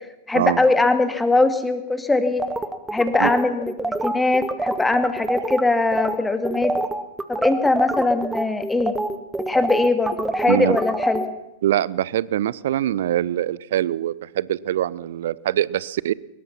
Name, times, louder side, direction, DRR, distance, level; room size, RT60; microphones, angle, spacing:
voice 1, 0.3-2.4 2.9-6.7 7.3-9.0 9.5-11.2, left 2 dB, 10° left, 8 dB, 2.5 m, -21 dB
sound 1, 2.4-5.6 5.9-6.2 6.4-11.3, right 2 dB, 10° right, 1.8 m, -26 dB
voice 2, 11.6-16.1, right 12 dB, 60° right, 21 dB, 0.7 m, -23 dB
23.0 x 21.5 x 5.9 m, 0.94 s
figure-of-eight pair, 90°, 0 cm